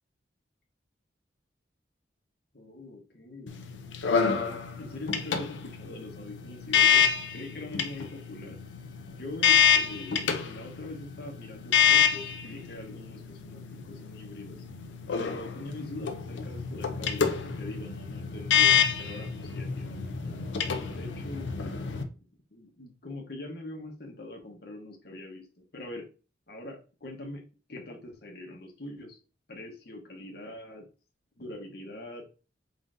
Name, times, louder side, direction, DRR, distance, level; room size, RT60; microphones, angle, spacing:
voice 1, 2.5-3.6 4.2-7.1 7.3-8.6 9.1-14.6 15.2-20.4 20.9-22.1 22.5-25.4 25.7-26.0 26.5-27.4 27.7-29.2 29.5-30.8 31.4-32.2, left 2 dB, 55° left, 1 dB, 1.0 m, -43 dB
sound 1, 3.5-22.0, left 8 dB, 80° left, 0.5 m, -28 dB
3.8 x 3.7 x 2.5 m, 0.34 s
head